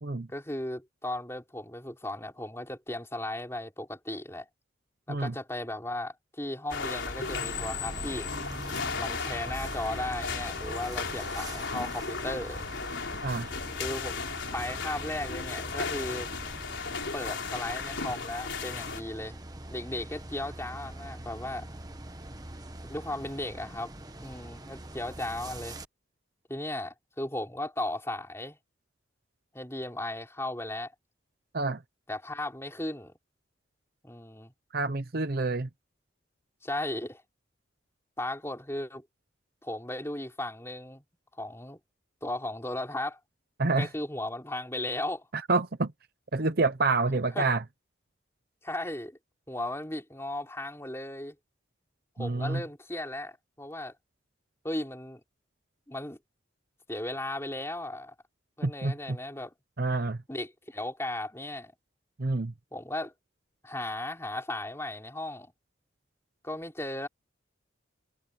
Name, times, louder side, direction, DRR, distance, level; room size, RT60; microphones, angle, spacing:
voice 1, 0.3-4.5 5.1-8.3 8.9-12.6 13.8-14.2 14.5-16.3 17.1-19.4 19.7-21.7 22.9-23.9 24.2-25.8 26.5-28.6 29.5-30.9 32.1-33.1 34.0-34.5 36.6-37.2 38.2-39.0 39.6-41.0 41.4-41.8 42.2-43.2 43.8-45.3 47.3-47.5 48.6-49.2 49.5-51.4 52.2-53.9 54.6-55.2 55.9-56.2 56.9-58.1 58.6-59.5 60.3-61.7 62.7-63.1 63.6-65.5 66.4-67.1, left 1 dB, 15° left, 4.6 m, -36 dB
sound 1, 6.7-19.0, left 5 dB, 75° left, 4.0 m, -35 dB
sound 2, 7.2-25.9, right 1 dB, 20° right, 1.3 m, -43 dB
voice 2, 34.7-35.7 43.6-43.9 45.3-45.9 46.3-47.6 52.2-52.6 58.6-59.2 59.8-60.2 62.2-62.5, right 3 dB, 50° right, 0.8 m, -28 dB
head